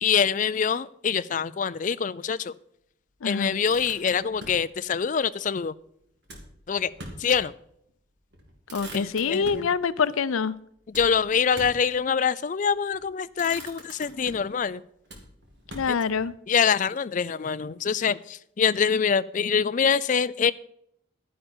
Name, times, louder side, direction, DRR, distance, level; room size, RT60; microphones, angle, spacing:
voice 1, 0.0-2.5 3.2-5.7 6.7-6.9 7.2-7.5 8.9-9.7 10.9-14.8 15.9-16.0 16.5-20.5, left 6 dB, 40° left, 15 dB, 0.4 m, -25 dB
voice 2, 3.2-3.6 8.7-10.5 15.7-16.3, left 5 dB, 90° left, 17 dB, 0.5 m, -25 dB
Motor vehicle (road), 3.6-4.7 6.2-7.5 7.9-8.0 8.3-9.7 10.9-11.9 12.8-13.0 13.3-14.6 15.1-16.3, right 1 dB, 55° right, 2.4 m, -43 dB
11.0 x 10.0 x 4.4 m, 0.72 s
head